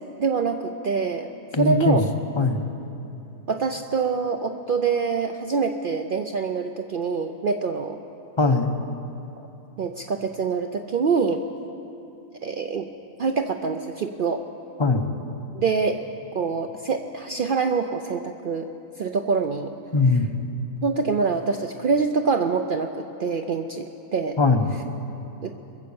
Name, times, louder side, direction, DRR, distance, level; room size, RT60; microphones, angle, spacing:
voice 1, 0.2-1.3 1.6-2.0 3.5-8.0 9.8-11.4 12.4-12.9 13.2-14.4 15.5-16.0 16.3-18.7 19.0-19.7 20.1-20.2 20.8-24.4 25.4-25.5, right 4 dB, 65° right, 5 dB, 0.5 m, -25 dB
voice 2, 1.5-2.0 2.4-2.7 8.4-8.8 14.8-15.1 19.9-20.3 24.4-24.7, left 3 dB, 30° left, 6 dB, 0.6 m, -20 dB
22.0 x 7.6 x 7.0 m, 2.9 s
omnidirectional pair, 1.5 m